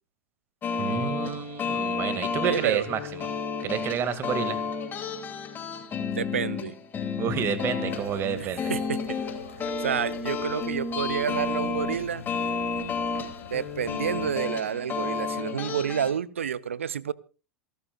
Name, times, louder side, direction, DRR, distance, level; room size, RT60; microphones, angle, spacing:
sound 1, 0.6-16.1, left 4 dB, 30° left, 2.6 m, -31 dB
voice 1, 0.8-3.3 3.6-4.6 7.2-8.7, right 7 dB, 35° right, 2.1 m, -29 dB
voice 2, 2.4-2.9 6.1-6.8 8.7-9.2 9.6-12.3 13.5-17.1, right 8 dB, 75° right, 0.6 m, -29 dB
sound 2, 7.9-14.3, left 4 dB, 85° left, 1.8 m, -46 dB
27.5 x 12.5 x 2.4 m
figure-of-eight pair, 85°, 7 cm